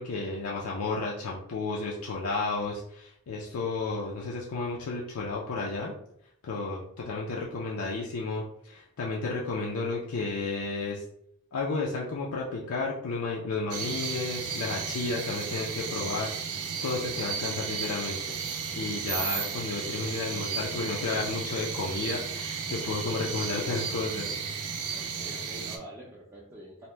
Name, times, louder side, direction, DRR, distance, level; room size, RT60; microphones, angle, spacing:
voice 1, 0.0-5.9 6.4-11.0 11.5-18.4 18.7-24.3, left 3 dB, 85° left, -3 dB, 0.5 m, -32 dB
sound 1, 13.7-25.8, right 6 dB, 90° right, 0.4 m, -34 dB
voice 2, 24.9-26.9, equal, 10° right, -6 dB, 0.3 m, -46 dB
2.8 x 2.1 x 3.2 m, 0.70 s
head